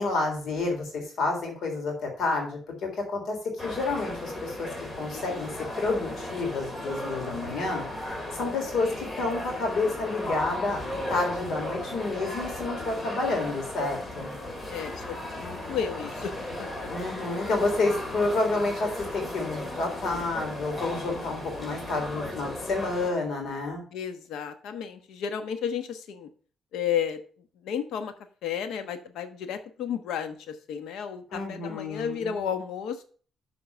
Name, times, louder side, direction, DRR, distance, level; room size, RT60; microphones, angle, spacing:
voice 1, 0.0-3.4 3.6-4.7 5.0-5.5 5.8-7.9 8.3-10.8 11.1-14.3 16.9-23.8 31.3-32.4, left 3 dB, 65° left, 2 dB, 3.7 m, -29 dB
sound 1, 3.6-23.1, left 1 dB, 25° left, 2.5 m, -36 dB
voice 2, 14.0-16.3 16.6-16.9 23.9-26.3 26.7-27.2 27.6-28.1 28.4-33.0, left 8 dB, 85° left, 9 dB, 1.1 m, -33 dB
7.3 x 5.0 x 6.7 m, 0.43 s
cardioid pair, 90°, 0 cm